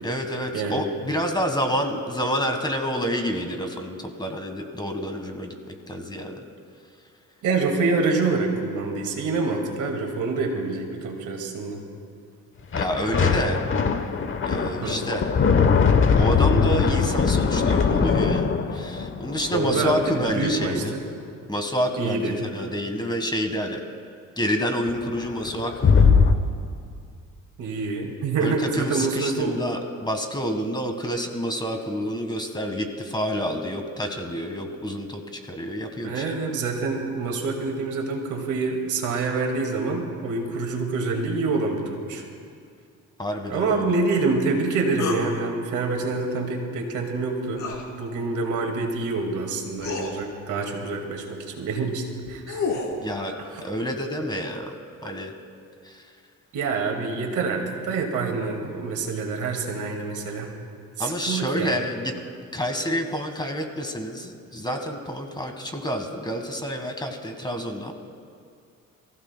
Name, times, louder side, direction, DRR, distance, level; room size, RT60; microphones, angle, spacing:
voice 1, 0.0-6.4 12.7-13.6 14.4-15.3 16.2-21.0 21.5-23.8 24.4-26.3 28.4-36.3 43.2-44.0 53.0-53.3 53.6-54.7 55.0-55.3 55.8-56.0 61.0-62.1 62.5-67.9, equal, 15° left, 5 dB, 1.5 m, -28 dB
voice 2, 7.4-11.8 14.8-15.0 19.5-21.0 22.0-22.4 27.6-29.6 36.0-42.2 43.5-47.7 47.9-52.8 56.5-60.5 61.0-61.8, right 3 dB, 80° right, 2 dB, 2.1 m, -26 dB
sound 1, 12.7-20.7 24.9-25.0 25.2-26.4, left 5 dB, 45° left, 1.0 m, -21 dB
sound 2, 45.0-45.3 47.6-47.8 49.2-49.3 49.8-50.1 52.1-53.0, left 4 dB, 75° left, 2.7 m, -29 dB
28.0 x 15.0 x 2.2 m, 2.3 s
cardioid pair, 90°, 30 cm